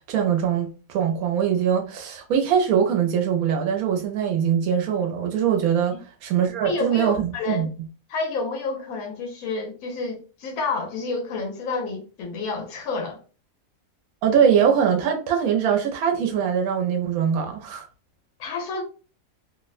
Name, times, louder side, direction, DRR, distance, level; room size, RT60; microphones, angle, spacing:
voice 1, 0.0-7.7 14.2-17.9, right 8 dB, 85° right, 1.0 m, -22 dB
voice 2, 6.6-7.7 8.1-13.2 18.4-18.8, left 4 dB, 85° left, 1.1 m, -29 dB
2.8 x 2.1 x 2.3 m
omnidirectional pair, 1.5 m